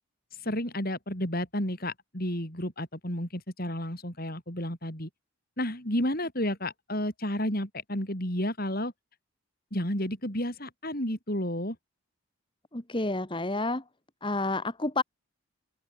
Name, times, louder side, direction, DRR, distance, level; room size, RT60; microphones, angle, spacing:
voice 1, 0.4-5.1 5.6-8.9 9.7-11.8, left 1 dB, 45° left, 6.6 m, -31 dB
voice 2, 12.7-13.8 14.2-15.0, left 2 dB, 20° left, 1.6 m, -29 dB
head